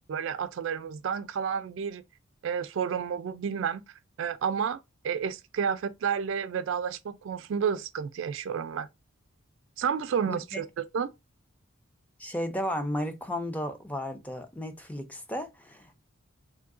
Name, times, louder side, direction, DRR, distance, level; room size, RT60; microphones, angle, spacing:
voice 1, 0.1-2.0 2.4-3.8 4.2-4.8 5.0-8.9 9.8-11.1, right 7 dB, 65° right, 0.3 m, -30 dB
voice 2, 10.2-10.6 12.2-16.0, left 1 dB, 5° left, 0.4 m, -34 dB
3.6 x 2.6 x 2.4 m
head